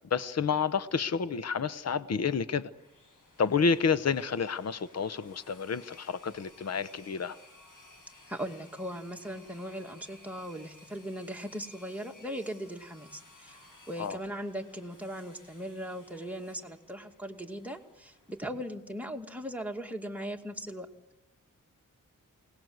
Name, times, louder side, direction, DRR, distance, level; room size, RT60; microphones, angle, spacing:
voice 1, 0.1-2.7 3.4-7.3 14.0-14.2, left 5 dB, 50° left, 14 dB, 0.9 m, -29 dB
sound 1, 2.5-18.5, left 2 dB, 80° left, 7.0 m, -58 dB
voice 2, 8.3-13.6 13.9-20.9, equal, 5° right, 2 dB, 2.3 m, -39 dB
28.0 x 19.0 x 8.0 m, 0.94 s
wide cardioid pair, 95°, 32 cm